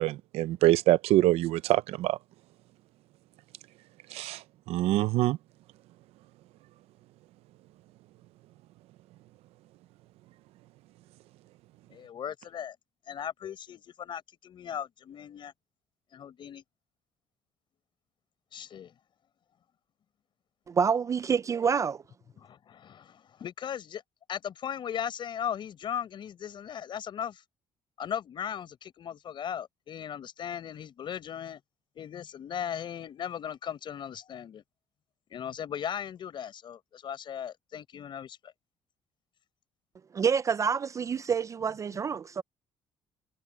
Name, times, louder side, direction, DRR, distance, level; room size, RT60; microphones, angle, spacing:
voice 1, 0.0-2.2 4.1-4.4 4.7-5.4, right 16 dB, 80° right, 0.6 m, -24 dB
voice 2, 11.9-12.7 13.1-15.5 16.1-16.6 18.5-18.9 22.4-24.0 24.3-27.4 28.0-31.6 31.9-34.6 35.3-38.4, left 9 dB, 50° left, 5.0 m, -37 dB
voice 3, 20.7-22.0 40.1-42.4, right 6 dB, 30° right, 0.4 m, -27 dB
cardioid pair, 105°, 10 cm